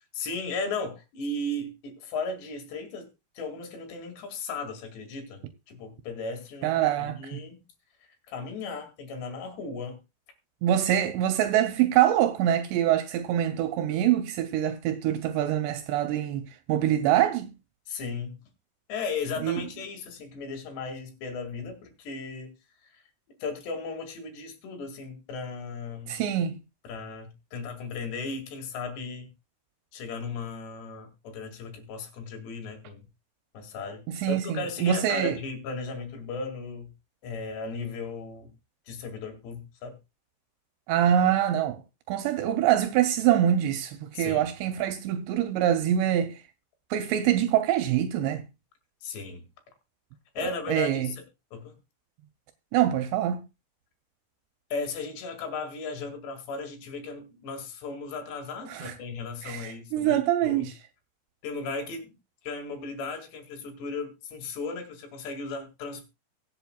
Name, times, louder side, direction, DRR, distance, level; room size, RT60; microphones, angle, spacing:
voice 1, 0.1-3.1 3.4-5.4 5.7-6.7 7.0-7.6 8.0-10.0 17.9-18.4 18.9-22.5 22.8-23.0 23.4-26.2 26.8-29.3 29.9-33.0 33.5-36.9 37.2-38.5 38.9-40.0 44.1-44.5 49.0-49.5 50.4-51.2 51.5-51.8 54.7-60.7 61.4-62.2 62.4-66.1, left 3 dB, 75° left, 4.3 m, -36 dB
voice 2, 6.6-7.4 10.6-17.5 19.4-19.6 26.1-26.6 34.1-35.4 40.9-41.8 42.1-46.4 46.9-48.4 50.4-51.1 52.7-53.4 58.7-59.0 59.4-60.8, right 11 dB, 80° right, 2.8 m, -25 dB
23.5 x 7.8 x 2.3 m
omnidirectional pair, 5.1 m